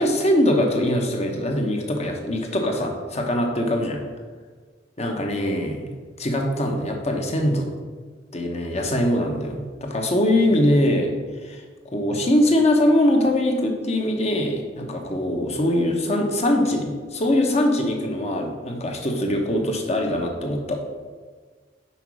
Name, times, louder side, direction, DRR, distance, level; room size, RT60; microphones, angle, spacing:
voice 1, 0.0-4.0 5.0-5.9 6.2-7.7 8.3-11.1 11.4-11.6 11.9-20.8, left 1 dB, 35° left, 2 dB, 1.0 m, -22 dB
5.7 x 4.6 x 6.2 m, 1.5 s
head